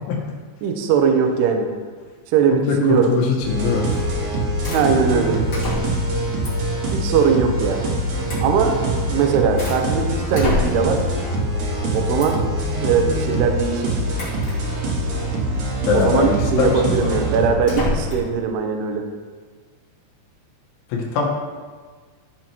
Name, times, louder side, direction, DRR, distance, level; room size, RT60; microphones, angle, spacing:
voice 1, 0.6-1.7 2.3-3.1 4.7-5.4 6.9-7.8 8.4-8.8 9.0-11.0 11.9-12.4 12.8-14.0 15.9-19.0, right 6 dB, 75° right, 4 dB, 2.6 m, -20 dB
voice 2, 2.5-3.9 15.9-17.1 20.9-21.3, left 4 dB, 80° left, -1 dB, 3.7 m, -21 dB
sound 1, 3.4-17.5, right 1 dB, 55° right, 2.6 m, -24 dB
sound 2, 3.9-4.2 4.6-4.9 5.5-6.1 6.4-6.7 8.3-8.5 9.1-9.8 10.3-11.0 12.2-12.5 14.1-14.6 15.9-16.2 17.6-18.3, left 1 dB, 30° left, 2.2 m, -27 dB
14.0 x 7.6 x 3.0 m, 1.5 s
omnidirectional pair, 5.4 m